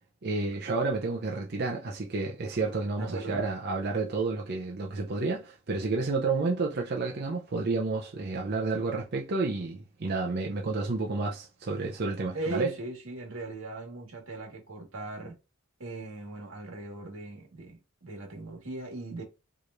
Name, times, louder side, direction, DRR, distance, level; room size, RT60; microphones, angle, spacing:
voice 1, 0.2-12.7, right 3 dB, 50° right, 0.6 m, -30 dB
voice 2, 3.0-3.4 12.3-15.4 15.8-19.2, right 2 dB, 85° right, 1.6 m, -38 dB
4.7 x 3.1 x 2.5 m
head